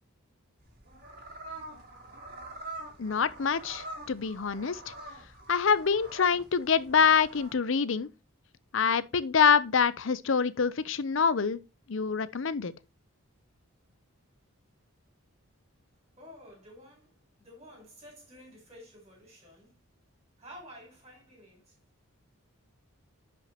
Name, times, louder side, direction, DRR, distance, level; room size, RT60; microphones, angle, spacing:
sound 1, 0.6-7.5, right 2 dB, 40° right, 2.9 m, -45 dB
voice 1, 3.0-4.9 5.5-8.1 8.7-11.6 11.9-12.7, left 6 dB, 60° left, 0.6 m, -26 dB
voice 2, 16.2-19.8 20.4-21.8, equal, 25° right, 4.5 m, -51 dB
10.0 x 5.9 x 2.9 m
head